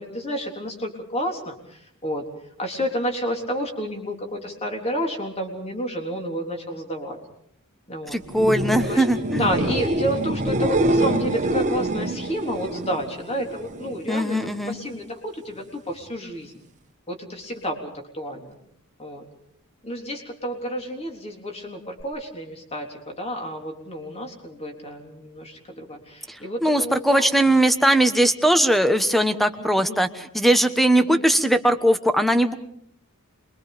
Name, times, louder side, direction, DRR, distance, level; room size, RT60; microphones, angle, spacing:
voice 1, 0.0-2.2 2.6-7.2 7.9-8.2 8.7-9.0 9.4-16.5 17.1-18.5 19.0-19.2 19.8-27.3 29.8-30.0 31.0-31.2, equal, 30° left, 2 dB, 3.7 m, -30 dB
voice 2, 8.1-9.4 14.1-14.7 26.3-32.5, right 1 dB, ahead, 9 dB, 1.2 m, -20 dB
sound 1, 8.2-14.0 14.4-14.9 22.0-22.1, right 1 dB, 35° right, 1.5 m, -25 dB
27.0 x 23.5 x 5.2 m, 0.68 s
head